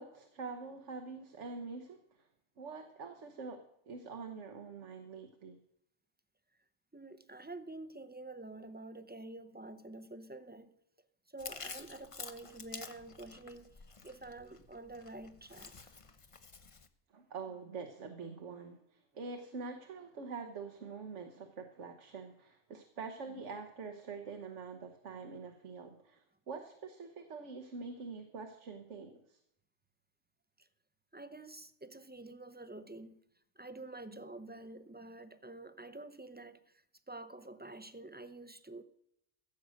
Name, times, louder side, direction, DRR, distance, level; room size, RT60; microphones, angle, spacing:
voice 1, 0.0-2.3 2.6-3.6 3.9-5.6 17.1-29.4, right 4 dB, 75° right, 1.5 m, -45 dB
voice 2, 6.9-10.7 11.3-16.0 30.6-30.7 31.1-33.2 33.6-38.8, right 2 dB, 10° right, 0.5 m, -48 dB
Chewing mastication, 11.4-16.9, left 4 dB, 30° left, 0.8 m, -49 dB
15.5 x 7.8 x 6.4 m
omnidirectional pair, 1.2 m